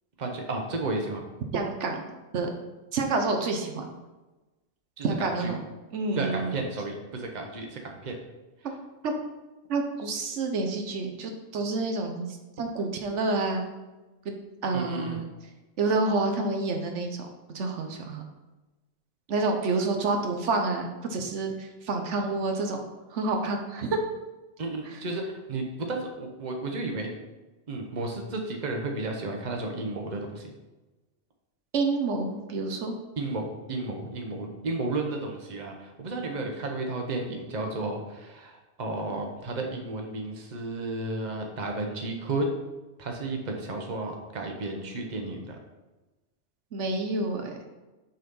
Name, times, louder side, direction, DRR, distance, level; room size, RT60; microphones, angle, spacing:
voice 1, 0.2-1.2 5.0-5.5 6.2-8.1 14.7-15.2 24.6-27.1 27.7-30.5 33.2-42.5 43.0-45.6, right 2 dB, 40° right, 2 dB, 1.1 m, -33 dB
voice 2, 1.5-2.0 2.3-2.5 2.9-3.9 5.0-5.6 5.9-6.6 8.6-8.7 9.0-9.1 9.7-13.7 14.2-14.3 14.6-15.2 15.8-17.3 17.5-18.2 19.3-22.8 23.1-24.0 31.7-33.0 46.7-47.5, right 3 dB, 85° right, 3 dB, 1.2 m, -28 dB
6.6 x 4.1 x 5.4 m, 1.1 s
omnidirectional pair, 1.2 m